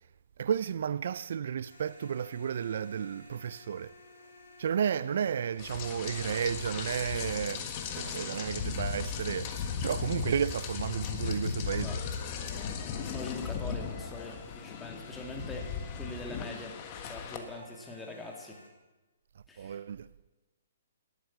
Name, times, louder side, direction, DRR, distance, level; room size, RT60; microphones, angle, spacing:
voice 1, 0.4-3.9 4.6-11.9 19.6-20.1, right 8 dB, 65° right, 0.3 m, -32 dB
sound 1, 1.7-18.7, left 2 dB, 75° left, 2.8 m, -56 dB
Rain, 5.6-17.4, left 6 dB, 35° left, 1.5 m, -37 dB
voice 2, 11.7-12.0 13.0-16.8 17.1-18.6 19.5-19.8, left 2 dB, 10° left, 2.2 m, -43 dB
11.5 x 9.2 x 7.5 m
hypercardioid pair, 140°, 0 cm